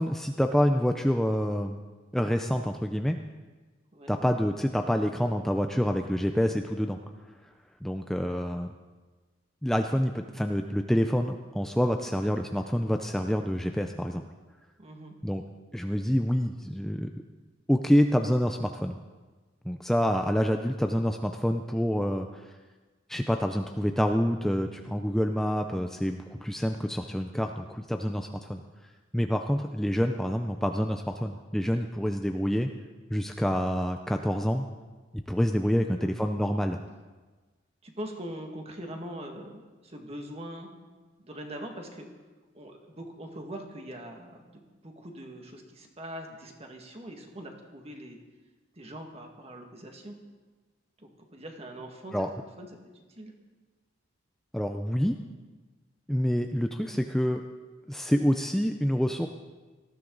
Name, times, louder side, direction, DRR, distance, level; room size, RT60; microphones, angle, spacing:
voice 1, 0.0-1.8 2.1-3.2 4.1-7.0 7.8-8.7 9.6-14.2 15.2-15.4 15.7-17.1 17.7-19.0 19.7-22.5 23.1-28.6 29.1-32.7 33.1-34.7 35.3-36.8 52.1-52.3 54.5-55.2 56.1-57.4 57.9-59.3, equal, ahead, 5 dB, 0.5 m, -27 dB
voice 2, 14.8-15.2 35.7-36.1 37.8-40.7 41.2-42.1 42.5-44.5 44.8-48.2 48.8-50.2 51.0-52.2 52.6-52.7 52.9-53.3, right 1 dB, 35° right, 2 dB, 1.8 m, -42 dB
19.0 x 14.0 x 3.9 m, 1.3 s
head